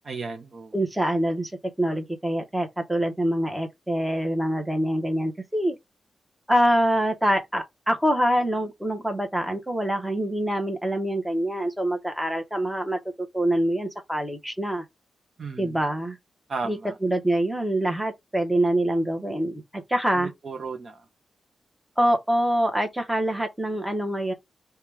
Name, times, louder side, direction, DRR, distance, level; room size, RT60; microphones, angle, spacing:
voice 1, 0.0-0.7 15.4-15.8 16.5-16.9 20.1-21.0, right 4 dB, 50° right, 0.6 m, -34 dB
voice 2, 0.7-1.5 1.8-5.7 6.5-13.0 13.3-14.8 15.6-16.2 16.6-20.3 22.0-24.3, right 1 dB, 5° right, 1.0 m, -25 dB
4.7 x 2.3 x 3.4 m
wide cardioid pair, 120°, 0 cm